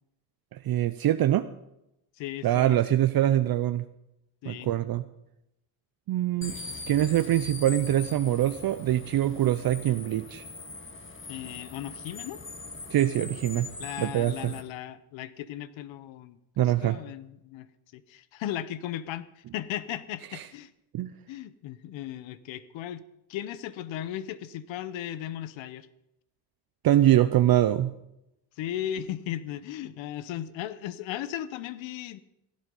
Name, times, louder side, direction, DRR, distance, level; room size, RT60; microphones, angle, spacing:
voice 1, 0.5-1.5 2.4-3.8 4.5-5.0 6.1-6.5 6.9-10.4 12.9-13.7 14.0-14.5 16.6-17.0 20.3-20.4 20.9-21.1 26.8-27.9, right 12 dB, 50° right, 10 dB, 0.7 m, -24 dB
voice 2, 2.2-2.8 4.4-4.7 11.3-12.4 13.8-17.7 17.9-20.7 21.3-23.0 23.3-25.9 28.6-32.2, left 11 dB, 85° left, 16 dB, 0.9 m, -36 dB
sound 1, 6.4-14.6, left 3 dB, 25° left, 1.7 m, -41 dB
16.0 x 11.5 x 5.4 m, 0.85 s
cardioid pair, 100°, 45 cm